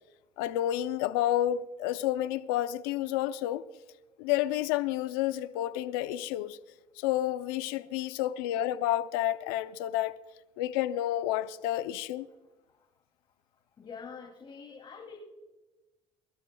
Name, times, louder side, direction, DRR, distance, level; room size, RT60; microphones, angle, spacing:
voice 1, 0.4-3.6 4.2-6.6 7.0-10.2 10.6-12.3, left 13 dB, 90° left, 0.5 m, -30 dB
voice 2, 13.8-15.2, left 6 dB, 45° left, 2.7 m, -45 dB
24.5 x 13.0 x 2.3 m
supercardioid pair, 70°, 12 cm